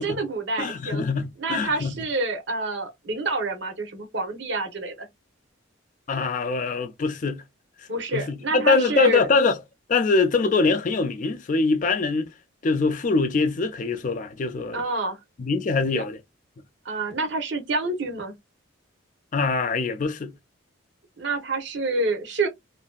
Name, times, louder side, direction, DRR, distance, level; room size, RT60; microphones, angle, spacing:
voice 1, 0.0-1.0 1.4-5.1 7.9-9.3 14.7-15.2 15.9-16.0 16.8-18.3 21.2-22.5, right 2 dB, 60° right, 0.8 m, -27 dB
voice 2, 0.6-1.9 6.1-7.4 8.1-9.6 9.9-12.3 12.6-14.8 15.4-16.2 19.3-20.3, left 4 dB, 40° left, 0.4 m, -23 dB
2.7 x 2.6 x 2.2 m
head